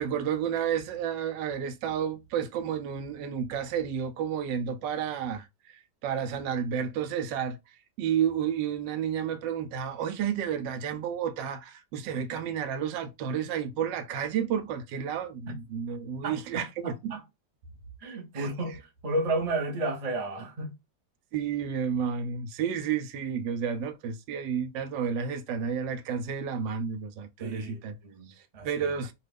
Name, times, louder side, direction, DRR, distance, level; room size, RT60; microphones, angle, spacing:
voice 1, 0.0-5.5 6.0-7.6 8.0-17.2 18.3-18.5 21.3-27.9 28.6-29.1, right 8 dB, 85° right, 1.2 m, -31 dB
voice 2, 16.2-17.2 18.0-20.7 27.4-29.0, right 2 dB, 40° right, 0.5 m, -33 dB
2.8 x 2.4 x 3.3 m
omnidirectional pair, 1.9 m